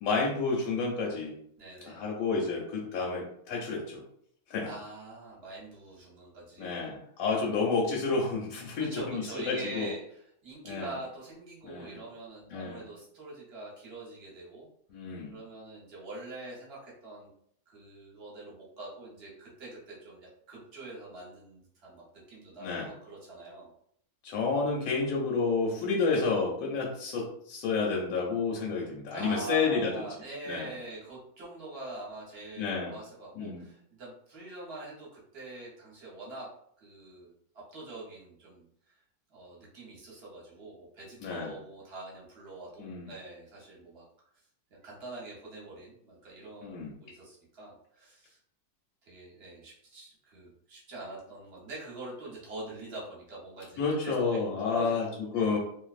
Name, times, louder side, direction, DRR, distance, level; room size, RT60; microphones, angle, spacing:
voice 1, 0.0-1.3 1.9-4.0 4.5-4.7 6.6-9.9 10.7-10.9 11.6-12.0 12.5-12.8 14.9-15.3 22.6-22.9 24.2-29.9 30.5-30.7 32.6-32.9 33.4-33.6 41.2-41.5 42.8-43.1 46.6-46.9 53.8-55.1 55.3-55.6, left 4 dB, 70° left, -2 dB, 0.9 m, -30 dB
voice 2, 1.6-2.1 4.6-6.8 8.8-14.7 15.3-17.3 17.7-23.7 29.1-36.5 36.8-39.0 39.3-44.0 44.7-48.4 49.0-55.6, right 2 dB, 50° right, -5 dB, 1.0 m, -44 dB
2.6 x 2.2 x 2.4 m, 0.66 s
omnidirectional pair, 1.7 m